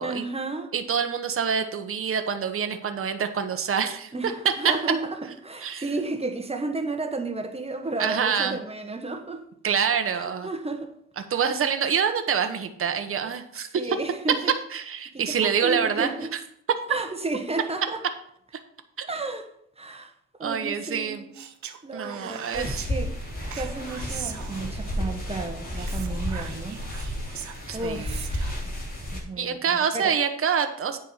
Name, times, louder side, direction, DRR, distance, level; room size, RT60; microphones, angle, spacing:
voice 1, 0.0-0.7 4.1-5.1 5.4-9.4 10.1-10.9 11.3-11.5 13.2-13.3 13.7-14.5 15.1-16.3 16.9-18.0 19.1-19.5 19.8-20.1 20.4-21.3 21.8-23.2 23.5-26.8 27.1-27.3 27.7-28.4 28.6-28.7 29.1-30.1, right 2 dB, 20° right, 1.5 m, -32 dB
voice 2, 0.7-4.1 4.6-4.8 5.6-5.9 8.0-8.6 9.6-10.5 11.3-14.0 14.7-16.1 19.0-19.3 20.4-21.2 21.9-22.8 27.7-28.2 29.4-31.0, right 7 dB, 45° right, 1.2 m, -26 dB
Speech, 21.3-22.9 23.5-24.9 25.7-28.6, right 9 dB, 70° right, 1.1 m, -41 dB
sound 1, 22.5-29.2, equal, 30° left, 4.0 m, -32 dB
9.4 x 4.7 x 7.3 m
cardioid pair, 90°, 30 cm